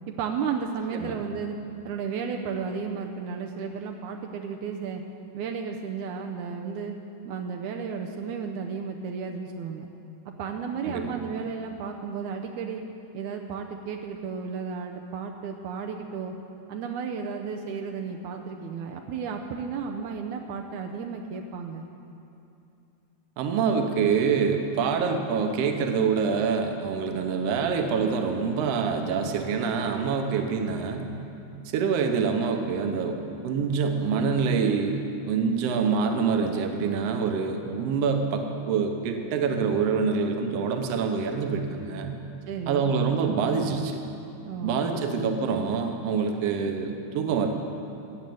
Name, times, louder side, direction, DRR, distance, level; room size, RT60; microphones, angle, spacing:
voice 1, 0.2-1.6 1.9-5.0 5.3-6.9 7.3-9.9 10.4-12.8 13.1-16.3 16.7-21.8 42.5-42.9 44.4-45.3, right 6 dB, 80° right, 2 dB, 2.0 m, -33 dB
voice 2, 23.4-31.1 31.7-33.2 33.4-35.0 35.3-42.2 42.7-44.0 44.6-47.5, right 5 dB, 65° right, 5 dB, 1.8 m, -26 dB
14.0 x 8.8 x 7.8 m, 2.7 s
omnidirectional pair, 3.6 m